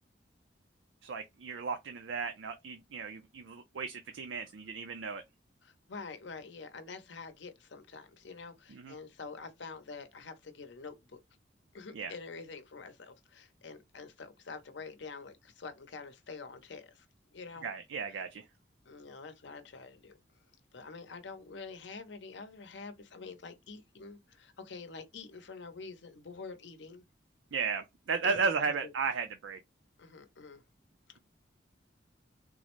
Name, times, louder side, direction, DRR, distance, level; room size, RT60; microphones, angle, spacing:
voice 1, 1.0-5.2 8.7-8.9 11.9-12.1 17.6-18.5 27.5-29.6, right 5 dB, 85° right, 0.4 m, -34 dB
voice 2, 5.6-11.2 11.7-17.1 17.3-17.7 18.8-20.2 20.7-27.0 28.2-28.5 28.8-28.9 30.0-30.6 31.1-31.2, left 4 dB, 70° left, 0.7 m, -46 dB
3.7 x 2.0 x 3.0 m
head